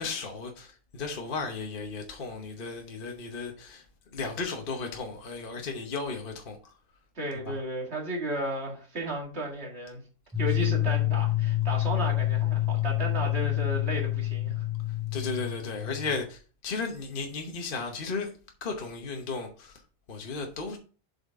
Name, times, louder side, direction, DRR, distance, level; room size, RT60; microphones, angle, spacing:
voice 1, 0.0-3.8 4.1-6.6 7.5-7.6 15.1-18.3 18.6-19.8 20.1-20.8, left 4 dB, 40° left, 1.1 m, -35 dB
voice 2, 7.2-10.0 10.4-14.7, right 1 dB, 45° right, 2.4 m, -33 dB
sound 1, 10.3-16.2, left 15 dB, 5° left, 2.7 m, -28 dB
7.3 x 5.7 x 3.6 m
omnidirectional pair, 1.5 m